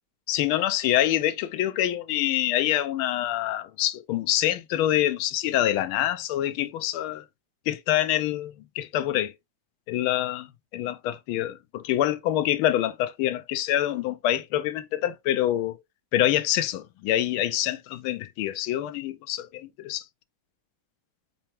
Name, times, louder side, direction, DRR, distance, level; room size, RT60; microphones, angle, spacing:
voice 1, 0.3-7.2 7.7-9.3 9.9-10.5 10.7-15.8 16.1-20.0, left 13 dB, 90° left, 1.4 m, -26 dB
4.4 x 4.1 x 2.9 m
omnidirectional pair, 2.2 m